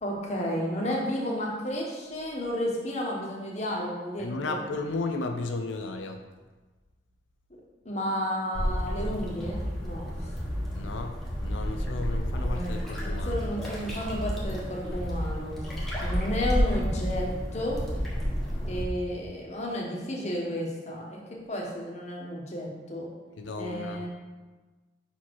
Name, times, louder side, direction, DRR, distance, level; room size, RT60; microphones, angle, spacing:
voice 1, 0.0-4.6 7.8-10.1 11.7-11.8 12.4-12.7 13.0-15.6 16.0-17.3 17.5-17.8 18.7-21.2 21.5-23.1 23.6-24.1, equal, 35° left, -2 dB, 1.1 m, -32 dB
voice 2, 4.2-6.2 10.7-13.4 23.4-24.1, left 3 dB, 80° left, 5 dB, 0.5 m, -34 dB
sound 1, 8.5-18.9, equal, ahead, 1.2 m, -30 dB
5.7 x 4.3 x 4.6 m, 1.3 s
head